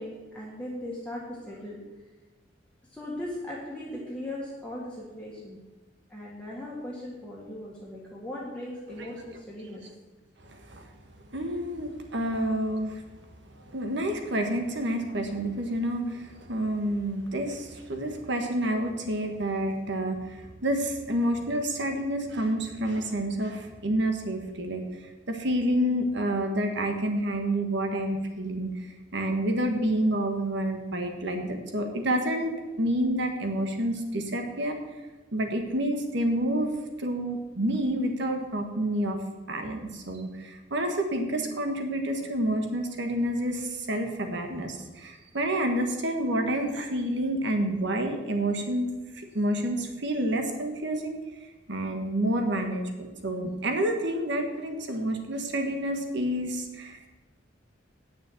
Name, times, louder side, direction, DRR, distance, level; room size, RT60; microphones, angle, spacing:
voice 1, 0.0-1.8 2.9-5.6 6.1-9.9, left 1 dB, 5° left, -6 dB, 1.7 m, -38 dB
voice 2, 10.4-10.9 11.3-13.0 13.5-24.8 25.3-28.7 29.1-34.8 35.3-36.7 37.0-39.2 39.5-48.9 49.1-51.2 51.7-57.1, right 1 dB, 65° right, 5 dB, 1.5 m, -29 dB
9.3 x 6.9 x 7.2 m, 1.2 s
head